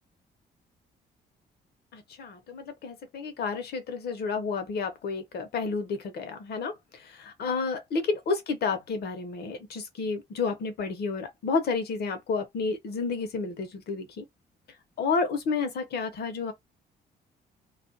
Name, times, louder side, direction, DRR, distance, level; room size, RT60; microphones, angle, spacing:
voice 1, 1.9-14.2 15.0-16.5, left 4 dB, 65° left, 0.8 m, -31 dB
2.4 x 2.2 x 2.6 m
cardioid pair, 85°, 18 cm